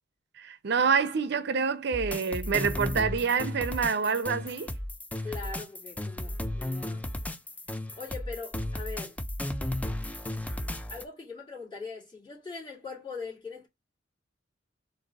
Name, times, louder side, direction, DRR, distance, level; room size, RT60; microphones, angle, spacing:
voice 1, 0.4-4.7, right 5 dB, 60° right, 0.6 m, -27 dB
sound 1, 1.9-11.0, left 1 dB, 10° left, 0.4 m, -34 dB
voice 2, 5.2-7.1 7.9-9.2 10.9-13.7, left 4 dB, 25° left, 2.7 m, -41 dB
4.1 x 2.6 x 3.9 m
head